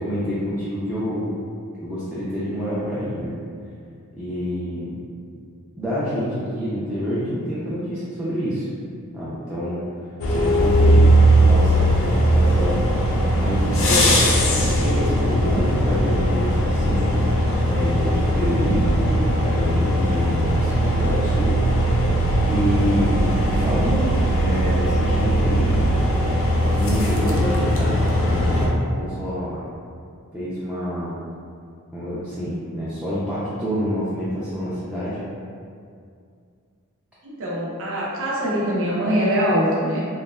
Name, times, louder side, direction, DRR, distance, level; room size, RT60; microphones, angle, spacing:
voice 1, 0.0-1.3 1.8-3.4 4.2-5.0 5.8-8.7 9.1-9.8 10.3-14.2 14.5-17.3 17.7-25.9 26.7-29.6 30.3-31.1 31.9-35.2, equal, 5° right, -11 dB, 0.4 m, -27 dB
sound 1, 10.2-28.7, equal, 60° left, 0.4 m, -19 dB
voice 2, 37.4-40.1, equal, 65° right, -6 dB, 0.6 m, -22 dB
3.0 x 2.1 x 2.2 m, 2.3 s
head